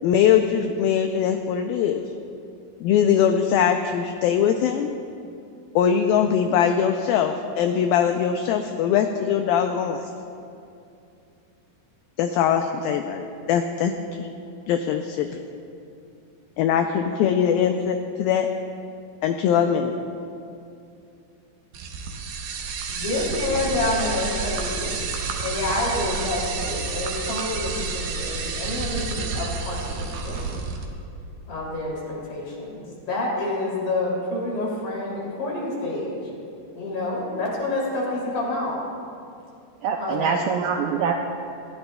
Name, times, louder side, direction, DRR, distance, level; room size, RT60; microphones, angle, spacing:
voice 1, 0.0-2.0 2.8-4.9 5.8-10.1 12.2-13.9 14.2-14.3 14.7-15.4 16.6-18.5 19.2-20.0, left 8 dB, 85° left, 6 dB, 2.1 m, -21 dB
sound 1, 21.7-30.8, right 4 dB, 70° right, 2.5 m, -30 dB
voice 2, 22.6-25.0 25.4-30.6 31.5-36.2 36.8-38.8 40.0-40.4, left 2 dB, 55° left, -4 dB, 4.2 m, -28 dB
voice 3, 39.8-41.1, right 6 dB, 90° right, 2 dB, 2.0 m, -24 dB
19.5 x 14.5 x 2.3 m, 2.6 s
omnidirectional pair, 4.7 m